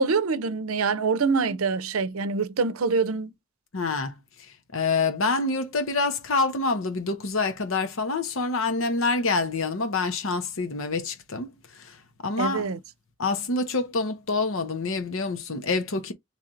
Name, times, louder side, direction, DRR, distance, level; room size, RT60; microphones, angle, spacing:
voice 1, 0.0-3.3 12.4-12.8, right 4 dB, 90° right, 0.6 m, -25 dB
voice 2, 3.7-12.7 13.2-16.1, left 3 dB, 75° left, 0.9 m, -27 dB
3.3 x 2.5 x 4.3 m
head